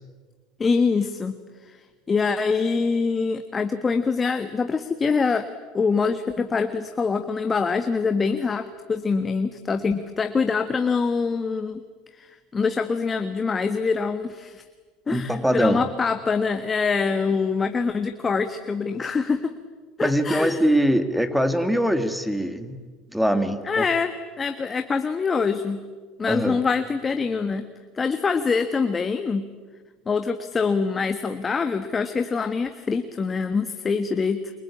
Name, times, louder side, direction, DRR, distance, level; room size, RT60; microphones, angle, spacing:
voice 1, 0.6-1.4 1.7-1.8 2.1-5.5 5.7-11.8 12.1-14.6 15.1-19.5 20.0-20.7 23.6-25.8 26.2-27.6 27.9-29.5 30.1-34.5, left 5 dB, 25° left, 8 dB, 1.3 m, -24 dB
voice 2, 15.1-15.8 20.0-22.8 23.1-23.8 26.3-26.6, equal, 5° right, 9 dB, 2.3 m, -22 dB
28.5 x 23.5 x 8.6 m, 1.4 s
supercardioid pair, 100°, 0 cm